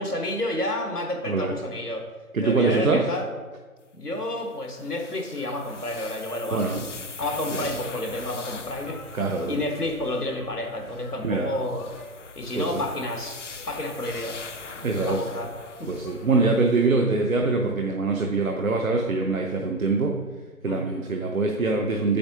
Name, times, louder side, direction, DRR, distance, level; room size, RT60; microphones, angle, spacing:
voice 1, 0.0-2.1 2.4-3.3 3.9-6.8 7.2-9.0 9.5-11.9 12.3-14.4 15.1-15.9 20.7-20.8, left 1 dB, 90° left, 4 dB, 1.4 m, -30 dB
voice 2, 1.2-1.6 2.3-3.1 6.5-6.9 7.5-7.7 9.1-9.6 11.2-11.5 12.6-12.8 14.8-15.2 15.9-20.2 20.6-22.2, right 3 dB, 65° right, 2 dB, 0.8 m, -24 dB
sound 1, 4.4-10.2 10.9-16.3 16.8-16.9, left 4 dB, 55° left, 0.5 m, -42 dB
sound 2, 6.6-16.5, left 2 dB, 70° left, 1.1 m, -45 dB
8.5 x 6.6 x 2.9 m, 1.3 s
figure-of-eight pair, 155°, 45 cm